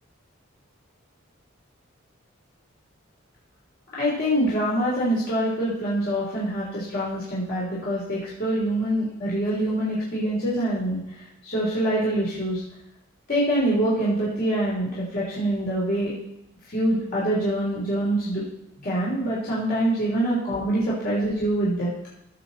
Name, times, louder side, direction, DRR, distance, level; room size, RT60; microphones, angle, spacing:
voice 1, 3.9-11.0 11.4-12.6 13.3-16.1 16.7-18.4 18.8-21.9, right 1 dB, 45° left, -7 dB, 3.5 m, -25 dB
16.0 x 7.4 x 4.2 m, 0.80 s
head